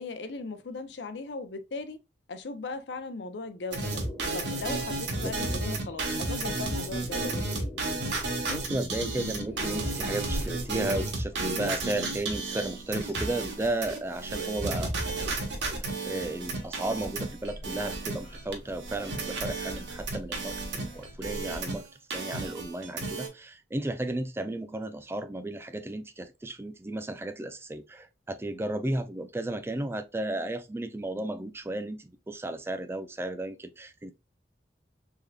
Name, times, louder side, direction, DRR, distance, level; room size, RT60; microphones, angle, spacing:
voice 1, 0.0-2.0 2.3-4.0 4.3-7.7 28.5-28.6, left 3 dB, 80° left, 0.6 m, -38 dB
sound 1, 3.7-18.5 18.8-21.8 22.1-23.3, right 2 dB, 85° right, 1.1 m, -33 dB
sound 2, 3.9-11.1 12.1-13.5 13.7-14.7, left 1 dB, 10° left, 0.9 m, -47 dB
voice 2, 8.5-15.4 15.8-34.1, right 1 dB, 15° right, 0.4 m, -34 dB
sound 3, 9.2-21.5, equal, 40° left, 1.2 m, -45 dB
3.6 x 3.3 x 2.3 m
head